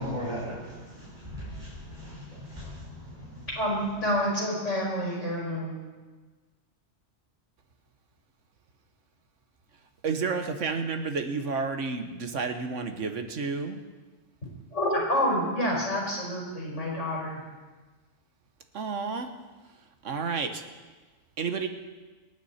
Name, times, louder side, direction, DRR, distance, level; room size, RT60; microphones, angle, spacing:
voice 1, 0.0-3.5, equal, 40° right, -8 dB, 5.2 m, -38 dB
voice 2, 3.6-5.8 14.7-17.4, equal, 80° left, -5 dB, 5.2 m, -28 dB
voice 3, 10.0-13.8 18.7-19.3 20.0-20.6 21.4-21.7, right 5 dB, 90° right, 7 dB, 1.5 m, -30 dB
26.0 x 9.7 x 4.3 m, 1.3 s
omnidirectional pair, 1.2 m